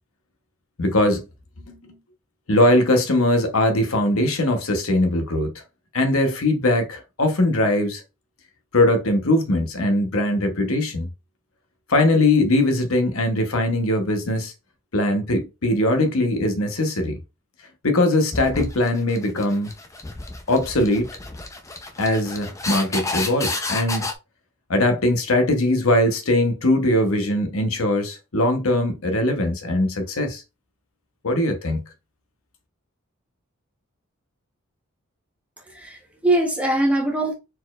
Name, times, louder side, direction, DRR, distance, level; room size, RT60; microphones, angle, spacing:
voice 1, 0.8-1.3 1.7-2.0 2.5-5.5 5.9-8.0 8.7-11.1 11.9-14.5 14.9-17.2 17.8-19.7 20.5-21.1 22.0-24.1 24.7-30.4 31.2-31.8, left 1 dB, 80° left, 1.0 m, -21 dB
sound 1, 18.3-24.1, left 3 dB, 15° left, 0.6 m, -30 dB
voice 2, 35.6-37.3, right 1 dB, 5° right, 0.9 m, -22 dB
4.4 x 4.1 x 2.4 m
head